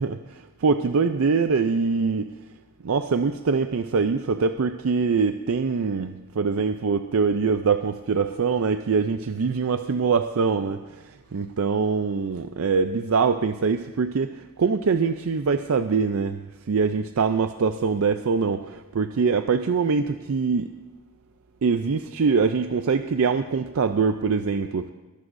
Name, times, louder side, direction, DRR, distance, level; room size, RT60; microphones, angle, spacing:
voice 1, 0.0-2.3 2.8-10.8 11.3-16.4 16.7-20.7 21.6-24.9, right 5 dB, 70° right, 9 dB, 0.5 m, -23 dB
22.0 x 12.0 x 2.6 m, 1.2 s
head